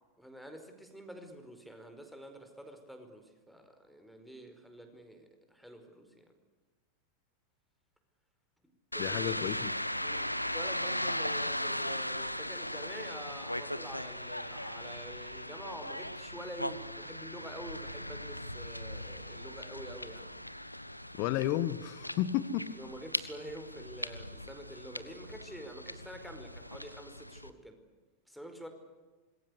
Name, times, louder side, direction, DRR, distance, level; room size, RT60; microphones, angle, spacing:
voice 1, 0.2-6.3 8.9-9.4 10.0-20.3 22.8-27.8 28.3-28.7, right 1 dB, ahead, 5 dB, 4.9 m, -47 dB
sound 1, 8.9-27.5, left 1 dB, 90° left, 1.2 m, -38 dB
voice 2, 9.0-9.7 21.2-22.7, left 12 dB, 45° left, 15 dB, 1.4 m, -32 dB
26.0 x 22.0 x 8.3 m, 1.3 s
figure-of-eight pair, 90°, 0 cm